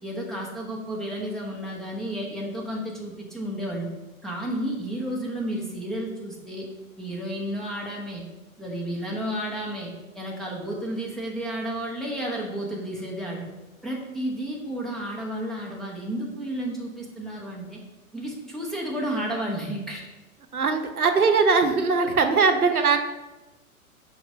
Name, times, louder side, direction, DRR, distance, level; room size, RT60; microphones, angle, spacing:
voice 1, 0.0-3.9 4.2-6.7 7.0-8.2 8.6-13.5 13.8-17.8 18.1-20.0 22.0-22.1, right 1 dB, ahead, -4 dB, 1.2 m, -32 dB
voice 2, 20.5-23.0, right 4 dB, 85° right, 6 dB, 0.9 m, -20 dB
5.8 x 5.3 x 4.3 m, 1.1 s
figure-of-eight pair, 105°, 43 cm